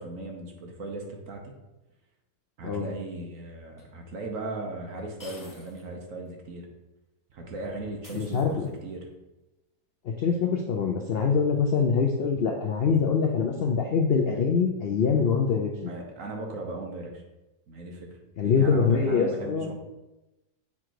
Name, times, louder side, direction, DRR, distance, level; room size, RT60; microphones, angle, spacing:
voice 1, 0.0-1.5 2.6-6.7 7.3-9.1 15.9-17.2 17.7-18.1 18.4-19.7, right 2 dB, 55° right, 1 dB, 1.3 m, -37 dB
sound 1, 3.8-3.9 5.2-5.9 6.3-6.4 8.0-8.9, left 1 dB, 15° left, 1.0 m, -49 dB
voice 2, 8.1-8.5 10.0-15.9 18.4-19.7, left 5 dB, 65° left, 2 dB, 0.6 m, -24 dB
7.1 x 3.8 x 4.6 m, 1.0 s
omnidirectional pair, 1.8 m